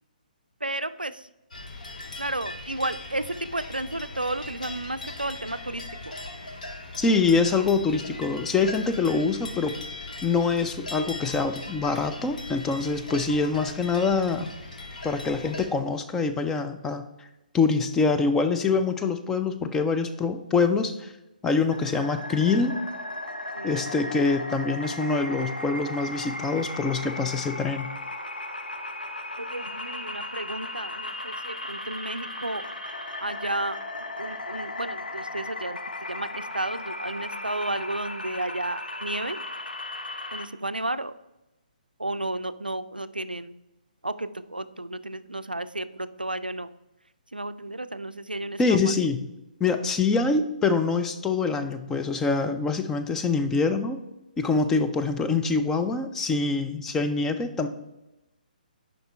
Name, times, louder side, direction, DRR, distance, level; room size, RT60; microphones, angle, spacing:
voice 1, 0.6-1.3 2.2-6.2 23.5-23.7 29.4-32.6 33.2-33.8 34.2-35.8 36.1-39.4 40.3-41.1 42.0-43.5 44.0-46.7 47.3-48.8, right 2 dB, 85° right, 13 dB, 0.3 m, -32 dB
sound 1, 1.5-15.7, left 2 dB, 60° left, 1.0 m, -39 dB
voice 2, 7.0-9.7 10.2-14.5 15.0-17.0 17.5-21.1 21.4-22.7 23.6-27.9 48.6-49.2 49.6-54.0 54.4-57.7, left 4 dB, 10° left, 7 dB, 0.3 m, -25 dB
sound 2, 21.7-40.5, left 1 dB, 80° left, 0.7 m, -36 dB
7.7 x 5.2 x 3.4 m, 0.97 s
figure-of-eight pair, 135°, 5 cm